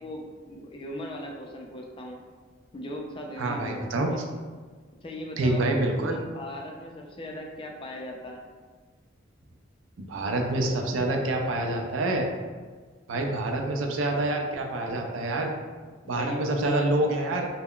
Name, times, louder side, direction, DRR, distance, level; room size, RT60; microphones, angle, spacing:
voice 1, 0.0-2.2 2.7-4.2 5.0-8.5 16.0-17.3, left 1 dB, 25° left, 0 dB, 0.4 m, -38 dB
voice 2, 3.4-4.1 5.4-6.2 10.0-12.3 13.1-15.5 16.1-17.5, right 2 dB, 80° right, 2 dB, 0.4 m, -27 dB
2.2 x 2.1 x 3.6 m, 1.5 s
head